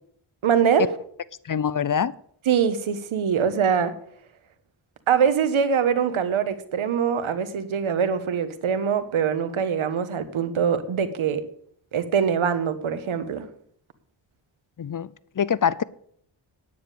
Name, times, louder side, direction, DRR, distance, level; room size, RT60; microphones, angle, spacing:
voice 1, 0.4-0.9 2.5-3.9 5.1-11.4 11.9-13.5, right 7 dB, 90° right, 1.3 m, -23 dB
voice 2, 1.4-2.1 14.8-15.1 15.4-15.8, left 8 dB, 45° left, 0.6 m, -24 dB
9.7 x 9.5 x 6.9 m
cardioid pair, 65°, 47 cm